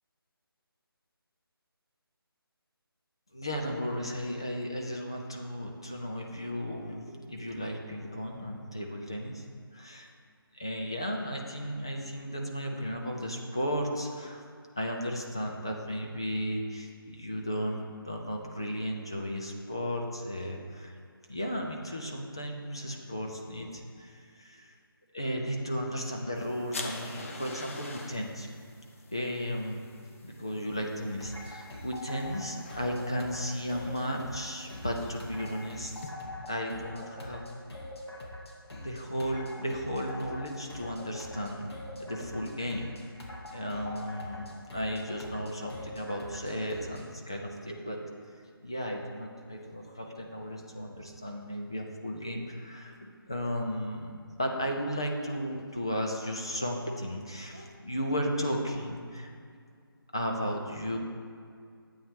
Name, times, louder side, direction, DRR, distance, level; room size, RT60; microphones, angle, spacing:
voice 1, 3.3-9.5 9.7-10.1 10.5-14.4 14.8-21.0 21.3-24.7 25.1-28.5 29.1-29.8 30.2-36.0 36.5-37.4 38.8-43.1 43.5-59.3 60.1-61.0, equal, 10° left, 0 dB, 0.3 m, -35 dB
sound 1, 26.3-36.1, left 2 dB, 35° left, 0.9 m, -47 dB
sound 2, 31.2-47.1, left 1 dB, 90° left, 2.3 m, -44 dB
12.5 x 8.6 x 3.6 m, 2.2 s
figure-of-eight pair, 170°, 13 cm